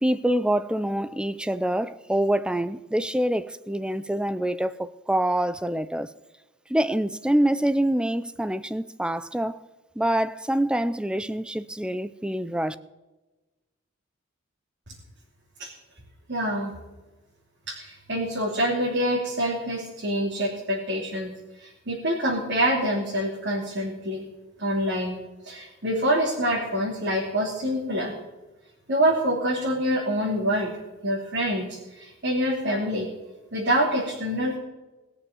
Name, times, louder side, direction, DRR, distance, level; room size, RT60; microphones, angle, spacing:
voice 1, 0.0-6.1 6.7-9.6 10.0-12.8, right 1 dB, 5° right, 0.5 m, -25 dB
voice 2, 16.3-16.7 17.7-21.3 21.6-24.2 24.6-25.2 25.4-28.1 28.9-30.8 31.0-33.1 33.5-34.6, equal, 60° right, 3.0 m, -26 dB
20.0 x 7.0 x 7.3 m
head